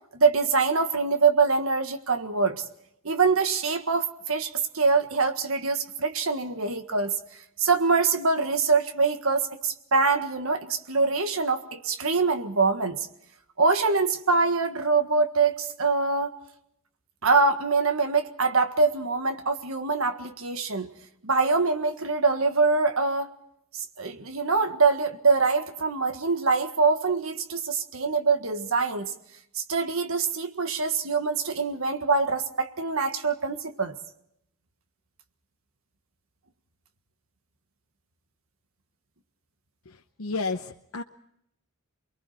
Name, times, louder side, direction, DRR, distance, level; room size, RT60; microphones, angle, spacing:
voice 1, 0.2-2.6 3.0-7.2 7.6-13.1 13.6-16.4 17.2-20.9 21.2-23.3 23.7-29.1 29.5-33.9, right 4 dB, 75° right, 7 dB, 1.6 m, -24 dB
voice 2, 39.9-41.0, left 3 dB, 90° left, 5 dB, 0.9 m, -32 dB
28.5 x 22.5 x 4.3 m, 0.76 s
head